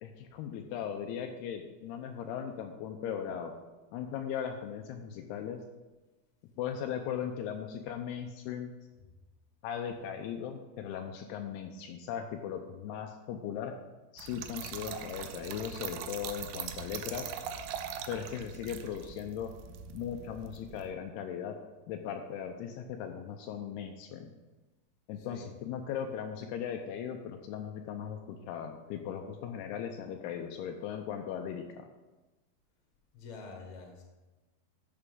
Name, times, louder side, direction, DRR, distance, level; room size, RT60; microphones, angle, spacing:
voice 1, 0.0-3.5 3.9-5.6 6.6-8.7 9.6-13.8 14.1-17.3 18.1-19.5 19.9-21.6 21.9-24.3 25.1-31.9, left 8 dB, 85° left, 4 dB, 2.5 m, -38 dB
Trickle dribble / Fill (with liquid), 14.2-20.9, right 8 dB, 85° right, 2.8 m, -42 dB
voice 2, 33.1-34.0, left 4 dB, 55° left, 1 dB, 2.5 m, -46 dB
13.5 x 6.0 x 3.7 m, 1.2 s
omnidirectional pair, 4.7 m